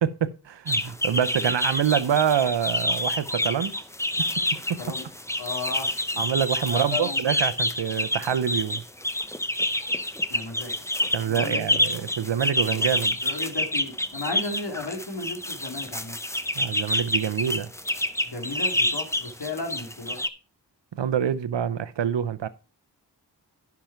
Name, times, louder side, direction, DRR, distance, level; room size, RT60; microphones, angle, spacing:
voice 1, 0.0-3.8 4.2-4.3 4.7-4.8 6.2-8.8 11.1-13.2 16.6-17.7 20.9-22.5, right 8 dB, 90° right, 0.7 m, -26 dB
sound 1, 0.7-20.3, left 1 dB, 5° left, 0.6 m, -27 dB
voice 2, 5.4-5.9 6.7-7.3 10.3-10.7 11.3-11.8 13.2-16.2 18.3-20.2, left 3 dB, 70° left, 2.7 m, -34 dB
10.5 x 6.0 x 4.4 m
wide cardioid pair, 60°, 42 cm